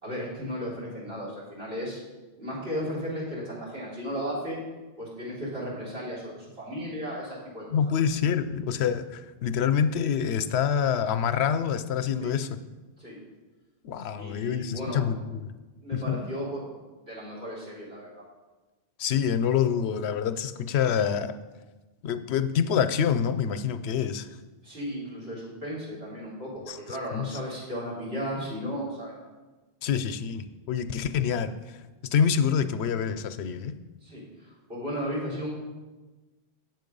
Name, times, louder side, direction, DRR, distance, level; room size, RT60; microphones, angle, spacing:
voice 1, 0.0-2.0 2.4-4.6 5.0-7.7 12.2-12.3 13.0-13.2 14.2-15.0 15.8-16.6 17.0-18.2 24.6-29.1 34.0-35.5, equal, 65° right, -5 dB, 3.9 m, -35 dB
voice 2, 7.7-12.6 13.8-15.5 15.9-16.2 19.0-21.4 22.0-24.3 26.7-27.4 29.8-31.8 32.1-33.7, left 7 dB, 80° left, 11 dB, 0.8 m, -26 dB
8.0 x 7.5 x 5.3 m, 1.2 s
omnidirectional pair, 1.1 m